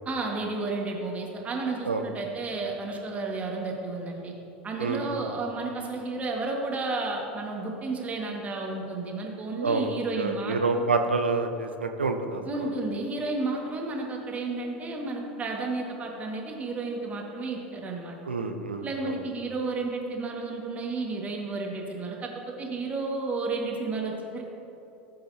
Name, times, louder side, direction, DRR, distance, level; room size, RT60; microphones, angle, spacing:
voice 1, 0.1-4.3 4.6-10.8 12.5-18.2 18.8-22.3 22.6-24.4, right 3 dB, 25° right, 0 dB, 1.9 m, -32 dB
voice 2, 4.8-5.3 9.6-12.7 18.3-19.2, right 3 dB, 85° right, 6 dB, 0.7 m, -28 dB
16.0 x 7.7 x 2.9 m, 2.9 s
figure-of-eight pair, 80°, 6 cm